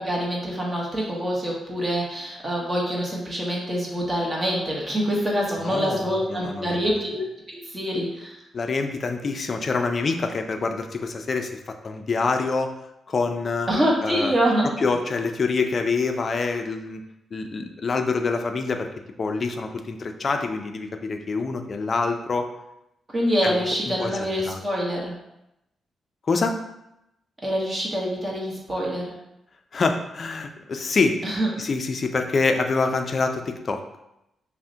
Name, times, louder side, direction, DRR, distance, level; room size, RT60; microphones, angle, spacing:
voice 1, 0.0-8.4 13.7-14.7 23.1-25.1 27.4-29.1 31.2-31.5, equal, 25° right, -3 dB, 1.0 m, -25 dB
voice 2, 5.6-6.9 8.5-12.7 13.1-13.7 14.0-14.3 14.6-17.0 17.3-18.9 19.2-22.5 23.4-23.6 23.9-24.6 26.3-26.6 29.7-31.2 31.6-33.8, left 4 dB, 40° left, 6 dB, 0.4 m, -26 dB
5.7 x 2.1 x 2.7 m, 0.87 s
cardioid pair, 115°, 0 cm